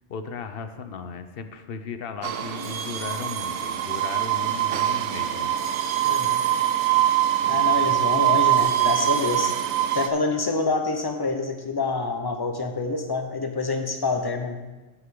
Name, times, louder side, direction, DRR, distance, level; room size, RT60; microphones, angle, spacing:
voice 1, 0.1-5.6, left 5 dB, 55° left, 9 dB, 0.8 m, -36 dB
sound 1, 2.2-10.1, right 12 dB, 75° right, 0.9 m, -23 dB
voice 2, 6.0-6.4 7.5-9.5 9.9-14.6, left 3 dB, 20° left, 5 dB, 0.8 m, -27 dB
14.0 x 6.6 x 3.8 m, 1.2 s
omnidirectional pair, 1.3 m